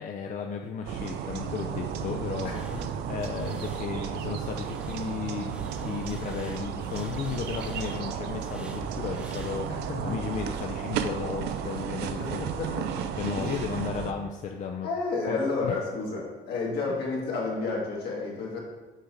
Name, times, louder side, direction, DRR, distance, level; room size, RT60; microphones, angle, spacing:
voice 1, 0.0-2.5 3.1-9.7 10.0-12.4 13.2-14.9 15.3-15.8, left 6 dB, 50° left, 3 dB, 0.5 m, -34 dB
sound 1, 0.9-14.1, right 8 dB, 80° right, 0.5 m, -33 dB
voice 2, 2.4-2.8 3.5-3.6 9.7-10.2 12.2-13.1 13.4-14.1 14.8-18.6, left 3 dB, 70° left, -2 dB, 1.9 m, -32 dB
sound 2, 2.4-9.9, equal, 5° right, 0.9 m, -49 dB
6.7 x 3.8 x 4.6 m, 1.3 s
cardioid pair, 110°, 17 cm